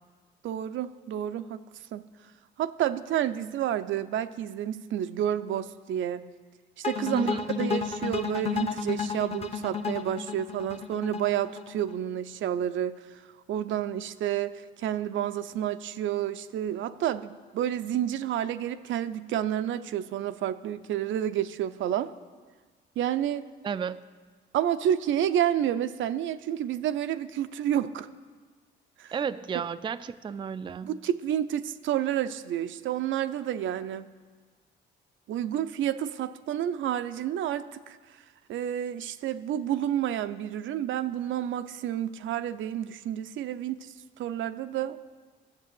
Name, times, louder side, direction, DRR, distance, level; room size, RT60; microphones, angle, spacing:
voice 1, 0.4-1.6 1.9-2.0 2.6-6.2 6.8-13.0 13.5-22.1 23.0-23.4 24.5-28.1 29.0-29.1 30.8-34.1 35.3-38.0 38.5-45.0, right 10 dB, 75° right, 11 dB, 0.5 m, -30 dB
sound 1, 6.8-11.9, left 6 dB, 30° left, 1.0 m, -32 dB
voice 2, 7.1-7.4 23.6-24.0 29.1-31.0, right 6 dB, 25° right, 12 dB, 0.3 m, -32 dB
12.5 x 7.3 x 7.6 m, 1.5 s
cardioid pair, 90°, 20 cm